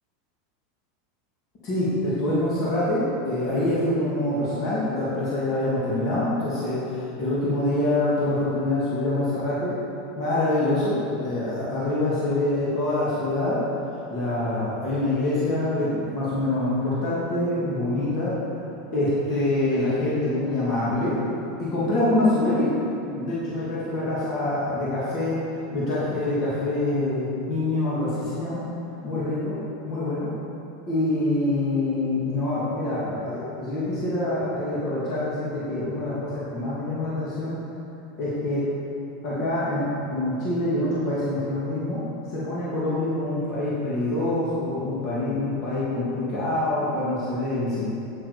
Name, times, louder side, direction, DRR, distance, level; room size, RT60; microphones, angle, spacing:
voice 1, 1.6-9.8 10.2-13.6 14.1-18.4 18.9-21.2 21.6-22.7 23.1-25.4 25.7-28.6 29.0-29.6 29.8-30.3 30.9-37.6 38.2-38.7 39.2-42.0 42.3-47.9, left 1 dB, 35° left, -9 dB, 2.7 m, -25 dB
11.5 x 9.1 x 5.1 m, 2.8 s
supercardioid pair, 170°, 0 cm